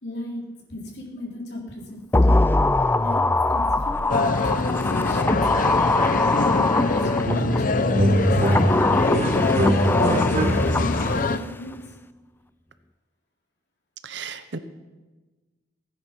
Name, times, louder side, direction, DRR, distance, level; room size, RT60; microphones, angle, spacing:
voice 1, 0.0-2.4 3.0-3.2 3.5-5.4 5.8-8.2 8.9-11.8, left 1 dB, 65° left, -1 dB, 3.7 m, -36 dB
sound 1, 2.1-7.6 8.2-11.5 11.7-11.8, left 2 dB, 10° left, 0.3 m, -23 dB
sound 2, 4.1-11.4, left 3 dB, 50° left, 0.7 m, -24 dB
sound 3, 7.3-7.6 7.9-11.0, right 1 dB, 40° right, 1.3 m, -22 dB
voice 2, 14.0-14.6, right 5 dB, 75° right, 11 dB, 0.8 m, -34 dB
17.0 x 9.7 x 6.0 m, 1.2 s
head